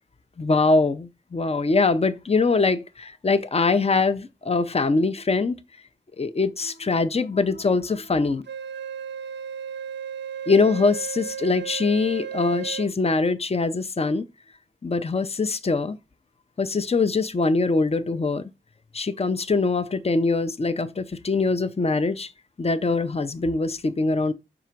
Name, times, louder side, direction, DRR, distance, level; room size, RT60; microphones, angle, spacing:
voice 1, 0.4-5.6 6.2-8.4 10.5-14.3 14.8-16.0 16.6-18.4 18.9-22.3 22.6-24.3, left 3 dB, 30° left, 0.5 m, -23 dB
Wind instrument woodwind instrument, 8.5-12.9, right 8 dB, 60° right, 0.4 m, -34 dB
4.6 x 2.5 x 4.5 m
wide cardioid pair, 45°, 20 cm